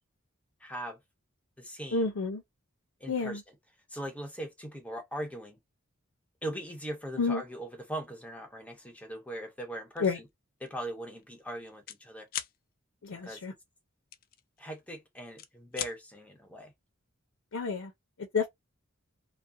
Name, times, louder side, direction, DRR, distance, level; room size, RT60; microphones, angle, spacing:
voice 1, 0.6-1.0 1.6-2.1 3.0-3.4 3.9-5.6 6.4-10.3 10.6-12.3 13.1-13.4 14.6-16.7, right 1 dB, 5° left, 0.6 m, -40 dB
voice 2, 1.9-2.4 3.1-3.4 7.2-7.4 10.0-10.2 13.0-13.5 17.5-17.9 18.3-18.5, left 4 dB, 85° left, 0.6 m, -29 dB
sound 1, 10.0-10.2 10.6-10.8 11.1-12.0 12.3-12.6 14.1-14.9 15.2-16.0, left 10 dB, 45° left, 0.3 m, -39 dB
2.3 x 2.1 x 2.5 m
head